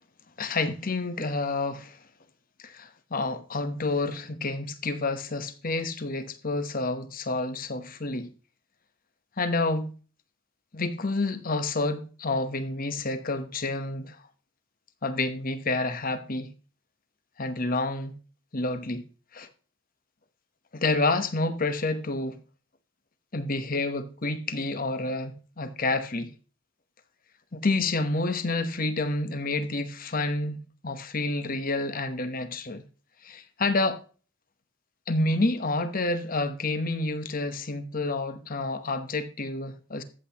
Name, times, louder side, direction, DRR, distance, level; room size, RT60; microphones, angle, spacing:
voice 1, 0.4-2.0 2.6-8.3 9.4-9.9 10.7-14.2 15.0-16.5 17.4-18.2 18.5-19.0 19.3-19.5 20.7-22.4 23.3-26.3 27.5-30.6 30.8-32.8 33.2-34.0 35.1-40.0, left 2 dB, 40° left, 1.0 m, -29 dB
14.0 x 8.1 x 2.9 m
head